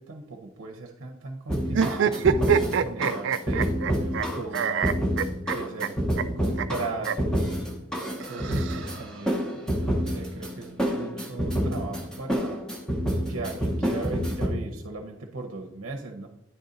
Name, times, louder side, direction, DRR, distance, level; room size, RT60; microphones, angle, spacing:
voice 1, 0.0-5.0 5.2-6.0 6.4-7.5 8.3-12.6 13.3-16.3, right 3 dB, 70° right, 2 dB, 0.7 m, -38 dB
sound 1, 1.5-14.5, equal, 5° left, 0.8 m, -28 dB
sound 2, 1.7-4.3 4.5-5.9 6.2-6.3 6.6-6.7 7.0-7.2 8.2-9.2, right 7 dB, 55° right, 0.3 m, -25 dB
9.9 x 3.9 x 3.9 m, 0.86 s
head